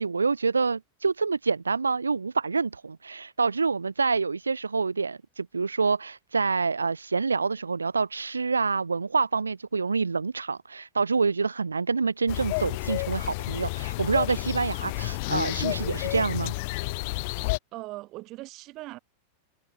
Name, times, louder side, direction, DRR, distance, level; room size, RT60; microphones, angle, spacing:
voice 1, 0.0-16.5, right 4 dB, 75° right, 0.3 m, -27 dB
sound 1, 12.3-17.6, left 26 dB, 50° left, 2.6 m, -30 dB
voice 2, 17.7-19.0, right 19 dB, 40° right, 2.3 m, -40 dB
figure-of-eight pair, 90°, 0 cm